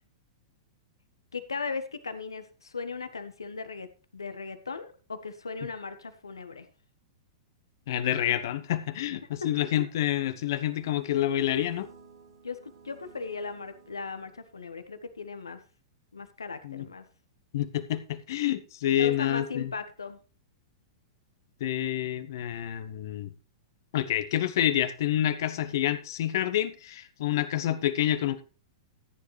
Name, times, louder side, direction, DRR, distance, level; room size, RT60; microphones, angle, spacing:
voice 1, 1.3-6.7 9.4-9.5 12.4-15.6 16.1-17.0 19.0-20.2, left 4 dB, 80° left, 1.4 m, -37 dB
voice 2, 7.9-11.9 16.6-16.9 17.5-19.7 21.6-23.3 23.9-28.4, left 12 dB, 55° left, 1.1 m, -28 dB
sound 1, 10.1-14.7, right 5 dB, 70° right, 2.6 m, -53 dB
14.0 x 9.6 x 3.3 m
figure-of-eight pair, 100°, 2 cm